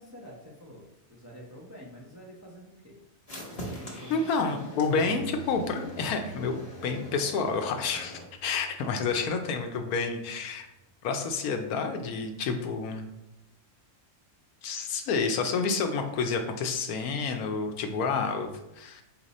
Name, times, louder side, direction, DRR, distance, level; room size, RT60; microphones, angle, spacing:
voice 1, 0.0-3.0 3.6-4.3, equal, 25° right, -3 dB, 0.3 m, -47 dB
sound 1, 3.3-8.3, equal, 30° left, 0.8 m, -43 dB
voice 2, 4.1-6.5 6.8-10.7 11.0-13.1 14.6-19.0, left 4 dB, 80° left, 5 dB, 1.1 m, -29 dB
sound 2, 4.8-11.4, right 2 dB, 60° right, 0.7 m, -49 dB
4.2 x 2.6 x 4.1 m, 0.93 s
omnidirectional pair, 1.5 m